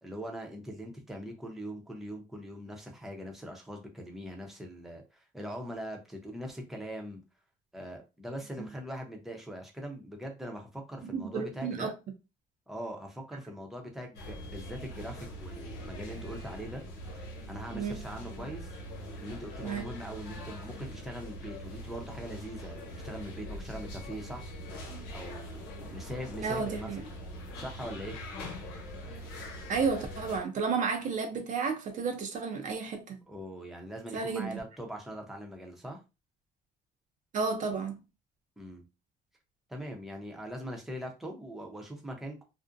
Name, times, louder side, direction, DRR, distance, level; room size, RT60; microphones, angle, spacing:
voice 1, 0.0-7.2 7.7-11.9 12.7-17.2 17.5-18.7 19.2-24.5 25.1-26.9 27.6-28.2 33.3-36.0 38.6-38.8 39.7-42.4, equal, ahead, 0.7 m, -41 dB
voice 2, 11.0-11.9 17.7-18.0 19.6-19.8 26.4-27.0 29.7-33.2 34.1-34.5 37.3-38.0, right 5 dB, 50° right, 0.5 m, -32 dB
sound 1, 14.1-30.4, equal, 85° left, 1.0 m, -42 dB
2.5 x 2.1 x 2.5 m
cardioid pair, 110°, 17 cm